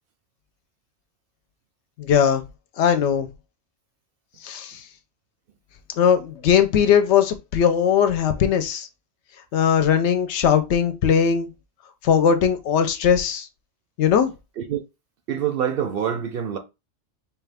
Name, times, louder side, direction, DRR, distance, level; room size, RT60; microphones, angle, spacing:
voice 1, 2.0-2.4 2.8-3.3 4.4-4.8 6.0-8.9 9.5-11.5 12.0-13.5 14.0-14.3, left 8 dB, 70° left, 0.8 m, -19 dB
voice 2, 15.3-16.6, right 9 dB, 60° right, 0.7 m, -25 dB
4.6 x 2.3 x 3.4 m
omnidirectional pair, 1.2 m